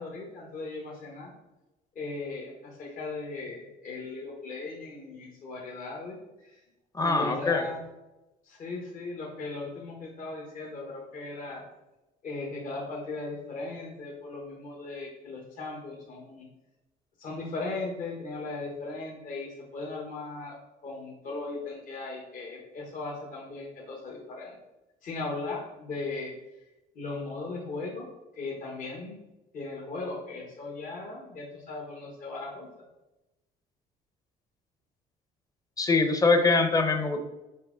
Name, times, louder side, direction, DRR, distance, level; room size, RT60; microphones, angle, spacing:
voice 1, 0.0-1.3 1.9-6.6 7.0-7.8 8.4-11.6 12.2-16.5 17.2-20.6 20.8-24.6 25.0-26.3 26.9-28.1 28.3-29.2 29.5-32.7, left 3 dB, 50° left, -3 dB, 1.3 m, -37 dB
voice 2, 6.9-7.6 35.8-37.2, left 3 dB, 20° left, 6 dB, 0.8 m, -23 dB
5.7 x 4.7 x 3.9 m, 1.0 s
cardioid pair, 110°, 17 cm